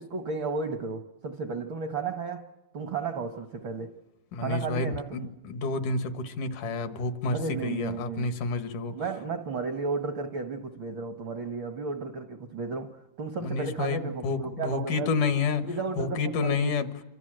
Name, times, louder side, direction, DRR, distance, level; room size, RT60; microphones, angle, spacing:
voice 1, 0.0-2.5 2.7-4.0 4.4-5.3 7.3-8.4 8.9-15.1 15.6-16.8, right 4 dB, 70° right, 1.2 m, -33 dB
voice 2, 4.3-8.9 13.4-15.7 16.0-17.0, left 4 dB, 80° left, 3.0 m, -29 dB
27.0 x 25.5 x 7.6 m
omnidirectional pair, 3.6 m